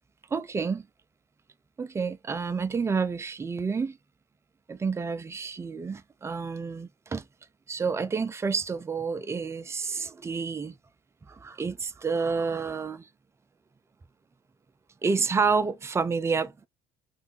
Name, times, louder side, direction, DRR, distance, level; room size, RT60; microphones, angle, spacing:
voice 1, 0.3-0.9 1.8-4.0 4.7-7.3 7.7-10.8 11.3-13.1 15.0-16.7, right 5 dB, 20° right, 0.5 m, -29 dB
3.2 x 2.6 x 3.8 m
supercardioid pair, 70°, 13 cm